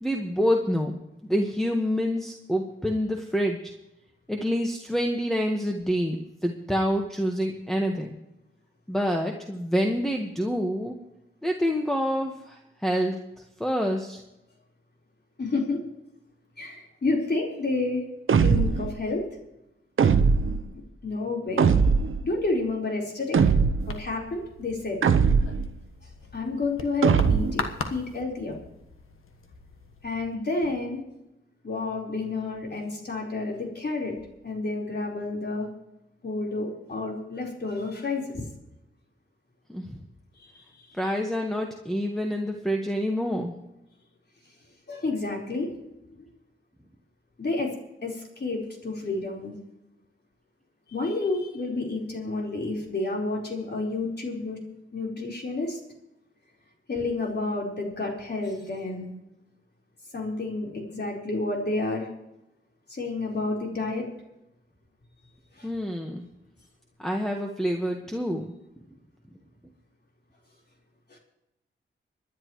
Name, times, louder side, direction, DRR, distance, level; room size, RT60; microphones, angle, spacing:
voice 1, 0.0-1.0 1.3-3.6 4.3-8.2 8.9-11.0 11.4-13.2 13.6-14.2 39.7-40.0 41.0-43.5 65.6-66.2 67.0-68.5, equal, ahead, 2 dB, 1.5 m, -27 dB
voice 2, 15.4-15.8 16.6-18.0 18.4-19.2 21.0-21.8 22.2-23.4 23.9-25.0 26.3-28.6 30.0-31.0 31.6-34.1 34.4-35.7 36.2-38.5 44.9-45.8 46.2-46.3 47.4-47.7 48.0-49.6 50.9-54.6 54.9-55.8 56.9-59.1 60.1-62.1 62.9-64.1 65.6-65.7 71.1-71.2, left 3 dB, 50° left, -1 dB, 4.4 m, -30 dB
sound 1, 18.3-18.9 20.0-20.7 21.6-22.2 23.3-24.0 25.0-25.7 27.0-27.7, right 5 dB, 75° right, 0.8 m, -21 dB
sound 2, 23.8-30.3, left 4 dB, 80° left, 1.4 m, -40 dB
26.0 x 10.5 x 3.2 m, 0.90 s
cardioid pair, 70°, 21 cm